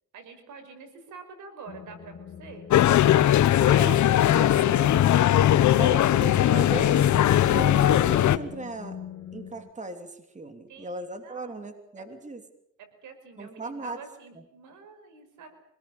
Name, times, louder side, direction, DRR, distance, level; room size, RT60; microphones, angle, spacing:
voice 1, 0.1-2.7 10.7-11.6 12.0-12.1 12.8-15.5, right 5 dB, 80° right, 8 dB, 5.7 m, -47 dB
sound 1, 1.7-9.7, left 7 dB, 45° left, 2.7 m, -43 dB
sound 2, 2.7-8.4, left 12 dB, 70° left, 1.2 m, -19 dB
voice 2, 3.4-4.9 5.7-9.0 9.3-12.4 13.4-14.0 14.3-14.4, right 2 dB, 25° right, 7 dB, 3.1 m, -37 dB
26.0 x 19.5 x 8.7 m, 0.77 s
cardioid pair, 90°, 30 cm